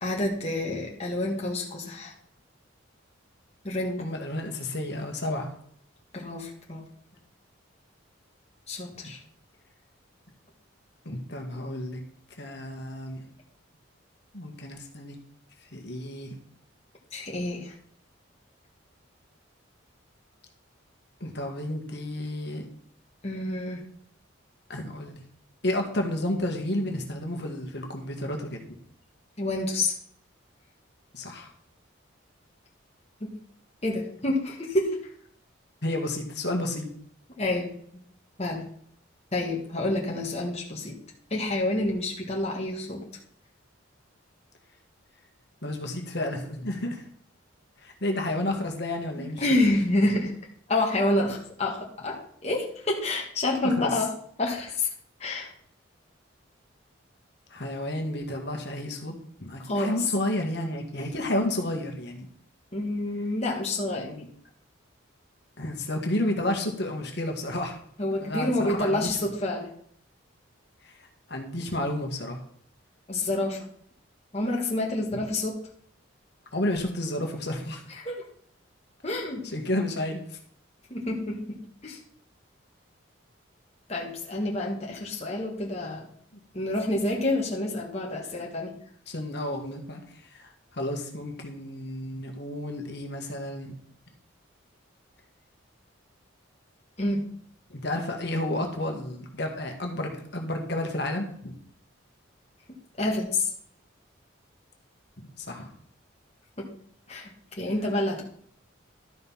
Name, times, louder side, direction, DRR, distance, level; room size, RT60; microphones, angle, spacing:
voice 1, 0.0-2.1 3.6-4.0 6.1-6.9 8.7-9.2 17.1-17.8 23.2-23.8 29.4-29.9 33.2-33.3 33.8-35.0 37.4-38.0 38.4-38.6 39.3-41.0 41.3-43.0 49.2-50.3 50.7-54.1 54.4-54.9 55.2-55.5 59.6-60.0 60.9-61.2 62.7-64.1 68.0-69.7 73.1-73.7 74.3-75.6 77.9-78.2 79.0-79.4 80.9-82.0 83.9-86.1 86.5-88.7 97.0-97.3 103.0-103.5 106.6-106.7 107.1-107.3 107.6-108.2, left 2 dB, 30° left, -1 dB, 1.6 m, -28 dB
voice 2, 4.0-5.5 11.1-12.0 12.4-13.3 14.3-15.2 15.7-16.4 21.2-22.7 24.7-25.2 25.6-28.6 31.1-31.5 35.8-36.9 45.6-47.1 47.8-49.4 53.6-53.9 57.5-59.2 59.4-62.3 64.0-64.3 65.6-67.8 68.2-69.2 70.8-72.4 75.1-75.2 76.5-77.9 79.5-80.4 89.1-93.7 97.7-101.6 105.2-105.7, left 1 dB, 55° left, 3 dB, 1.8 m, -31 dB
12.5 x 5.3 x 5.7 m, 0.64 s
head